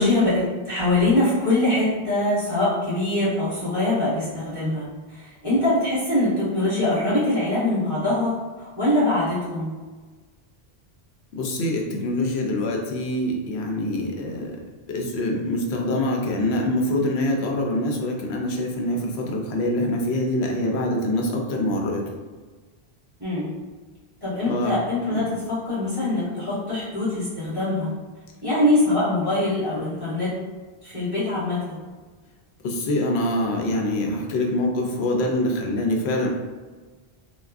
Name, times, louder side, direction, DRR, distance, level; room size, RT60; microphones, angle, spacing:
voice 1, 0.0-9.8 23.2-23.5 24.2-27.9 28.4-30.3 30.8-31.8, left 1 dB, 20° right, -13 dB, 1.4 m, -23 dB
voice 2, 11.3-14.5 14.9-22.0 24.5-24.7 25.1-25.2 32.6-36.3, left 1 dB, 85° left, 1 dB, 0.8 m, -25 dB
3.3 x 2.3 x 2.4 m, 1.4 s
omnidirectional pair, 1.1 m